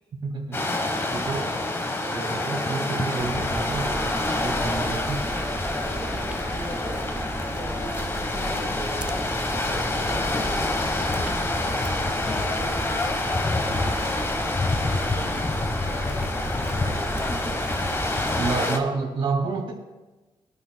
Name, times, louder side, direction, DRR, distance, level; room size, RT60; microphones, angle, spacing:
voice 1, 0.2-0.6 1.1-1.5 2.1-5.3 18.4-19.7, right 4 dB, 65° right, -3 dB, 2.2 m, -29 dB
sound 1, 0.5-18.8, left 2 dB, 25° left, 1.2 m, -27 dB
voice 2, 1.9-2.3 5.8-6.2 6.5-11.4 12.3-18.5, right 1 dB, 10° left, -1 dB, 2.3 m, -43 dB
sound 2, 3.2-18.5, right 2 dB, 10° right, 0.4 m, -34 dB
22.0 x 9.5 x 2.3 m, 1.2 s
wide cardioid pair, 135°, 10 cm